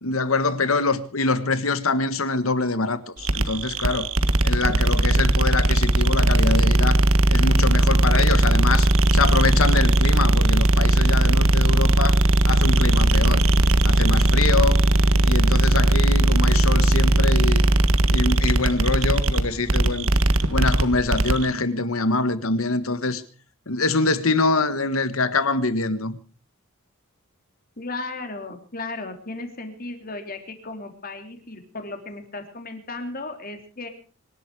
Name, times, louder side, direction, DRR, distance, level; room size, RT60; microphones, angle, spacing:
voice 1, 0.0-4.1 4.4-13.4 13.8-14.8 15.2-17.6 18.1-20.1 20.5-23.2 23.7-26.2, left 3 dB, 90° left, 1.6 m, -24 dB
sound 1, 3.2-21.4, right 1 dB, 85° right, 1.5 m, -18 dB
voice 2, 27.8-33.9, left 2 dB, 45° left, 3.4 m, -35 dB
25.0 x 11.5 x 4.8 m
head